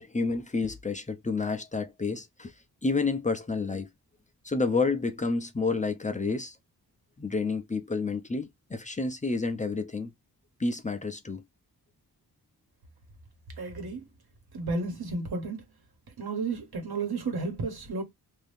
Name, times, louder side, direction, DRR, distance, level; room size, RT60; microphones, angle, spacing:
voice 1, 0.0-2.5 2.8-3.9 4.4-6.6 7.2-10.1 10.6-11.4, left 3 dB, 20° left, 0.5 m, -29 dB
voice 2, 13.6-14.1 14.5-15.7 16.2-18.0, right 3 dB, 70° right, 1.3 m, -32 dB
2.7 x 2.7 x 3.4 m
wide cardioid pair, 145°, 39 cm